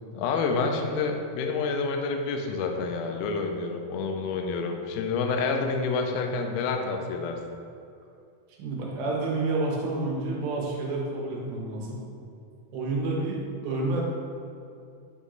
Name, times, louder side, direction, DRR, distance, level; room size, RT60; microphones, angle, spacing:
voice 1, 0.1-7.4, left 4 dB, 80° left, 4 dB, 1.8 m, -28 dB
voice 2, 8.6-12.0 12.7-14.0, right 2 dB, 90° right, -3 dB, 2.9 m, -29 dB
9.1 x 3.1 x 3.8 m, 2.5 s
omnidirectional pair, 4.1 m